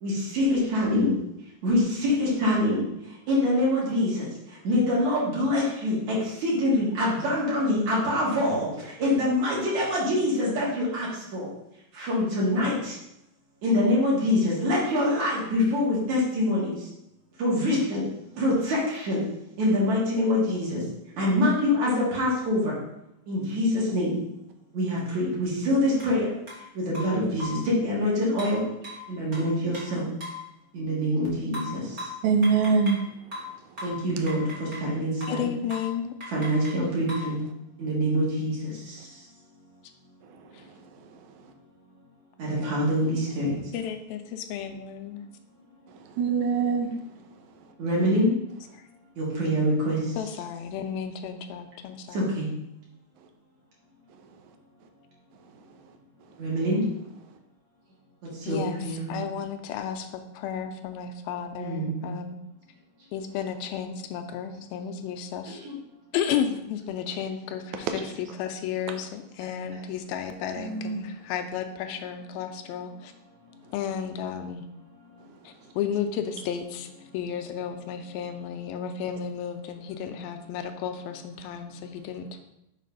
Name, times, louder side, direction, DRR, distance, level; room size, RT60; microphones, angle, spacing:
voice 1, 0.0-1.1 1.6-2.9 3.3-4.2 4.6-11.5 11.9-12.9 13.6-16.7 17.4-18.1 18.4-19.2 19.6-20.8 21.2-22.7 23.3-24.2 24.8-26.2 26.8-28.6 29.1-30.1 30.7-31.8 33.8-35.5 36.3-37.4 37.8-38.9 42.4-43.5 47.8-48.3 49.2-50.0 52.1-52.5 56.4-56.8 58.5-59.2 61.6-62.1 65.5-65.6, left 1 dB, 55° right, -6 dB, 3.0 m, -25 dB
sound 1, 26.0-26.1 26.5-26.6 26.9-27.7 28.4-30.5 31.5-33.1 33.3-34.9 35.2-35.4 35.7-35.9 36.2-37.3, left 2 dB, 25° right, 1.7 m, -38 dB
voice 2, 32.2-33.0 46.0-46.9 70.6-71.0, right 5 dB, 75° right, 5 dB, 1.8 m, -23 dB
voice 3, 35.3-36.1 40.5-40.6 43.7-45.2 50.2-52.3 58.4-62.4 63.1-65.6 66.1-73.1 73.7-74.7 75.4-82.4, left 8 dB, 85° left, 7 dB, 2.4 m, -33 dB
6.5 x 4.1 x 5.3 m, 0.83 s
omnidirectional pair, 4.2 m